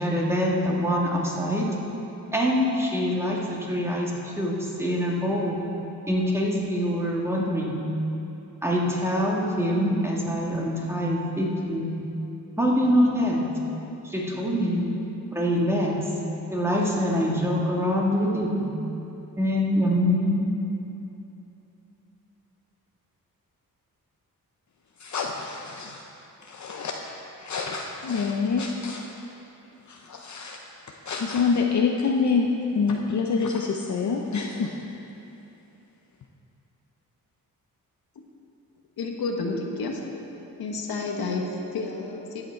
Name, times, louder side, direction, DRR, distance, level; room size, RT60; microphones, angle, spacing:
voice 1, 0.0-1.6 2.3-5.6 6.1-7.8 8.6-11.9 12.6-13.4 14.0-14.9 15.3-16.0 16.5-18.6 19.4-20.5, equal, 5° right, -3 dB, 1.7 m, -24 dB
voice 2, 25.0-26.0 26.5-26.9 27.4-29.0 29.9-30.6 31.1-34.8, left 5 dB, 50° left, 1 dB, 0.7 m, -26 dB
voice 3, 39.0-40.0 40.6-42.4, left 3 dB, 85° left, 1 dB, 1.3 m, -30 dB
14.0 x 8.1 x 4.5 m, 2.9 s
wide cardioid pair, 120°, 36 cm